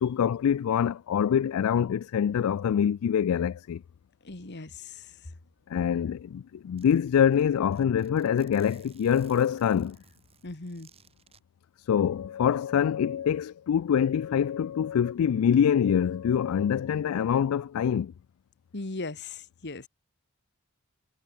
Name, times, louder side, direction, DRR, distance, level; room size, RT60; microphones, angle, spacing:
voice 1, 0.0-3.8 5.7-10.0 11.9-18.1, left 8 dB, 80° left, 0.3 m, -25 dB
voice 2, 4.2-5.3 10.4-10.9 18.7-19.9, left 3 dB, 55° left, 1.6 m, -38 dB
Zipper (clothing), 6.8-11.4, right 5 dB, 30° right, 3.4 m, -58 dB
head